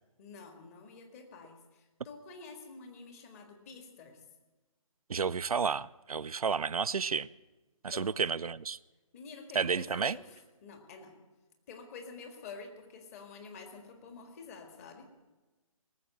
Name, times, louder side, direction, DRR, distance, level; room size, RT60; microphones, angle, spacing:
voice 1, 0.2-4.2 7.9-8.1 9.1-11.2 11.7-15.1, left 4 dB, 25° left, 5 dB, 1.7 m, -49 dB
voice 2, 5.1-7.3 7.8-8.8 9.5-10.2, right 6 dB, 90° right, 17 dB, 0.4 m, -31 dB
18.5 x 7.4 x 8.4 m, 1.2 s
figure-of-eight pair, 150°, 18 cm